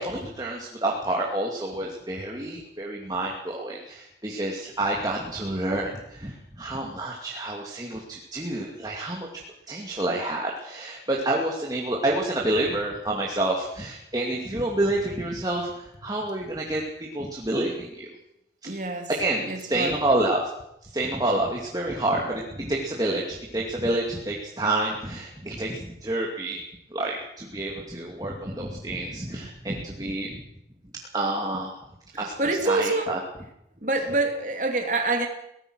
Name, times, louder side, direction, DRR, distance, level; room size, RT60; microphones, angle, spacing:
voice 1, 0.0-9.4 9.7-18.1 19.1-20.5 20.8-26.6 26.9-30.4 31.1-31.7 32.2-32.3 32.6-33.2, right 1 dB, 20° right, -2 dB, 2.5 m, -28 dB
voice 2, 18.6-19.1 19.4-20.0 32.1-33.1 33.8-35.3, right 2 dB, 45° right, 4 dB, 3.0 m, -26 dB
23.0 x 18.0 x 6.4 m, 0.81 s
head